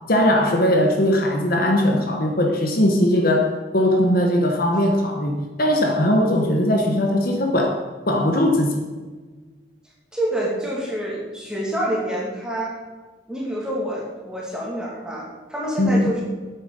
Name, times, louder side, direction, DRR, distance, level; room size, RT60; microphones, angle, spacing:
voice 1, 0.1-7.8 8.1-8.8 15.8-16.2, left 1 dB, 50° left, 2 dB, 1.2 m, -19 dB
voice 2, 10.1-12.8 13.3-16.2, right 1 dB, 5° right, -4 dB, 2.3 m, -27 dB
8.8 x 8.5 x 5.4 m, 1.4 s
head